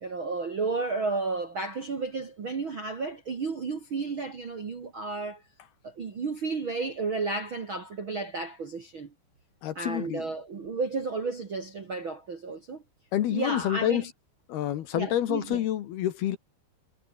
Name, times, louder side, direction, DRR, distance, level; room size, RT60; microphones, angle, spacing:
voice 1, 0.0-5.4 5.8-9.1 9.7-12.8 13.3-14.1 14.9-15.6, right 3 dB, 45° right, 1.7 m, -32 dB
voice 2, 9.6-10.2 13.1-14.0 14.5-16.4, left 12 dB, 65° left, 3.1 m, -28 dB
omnidirectional pair, 5.3 m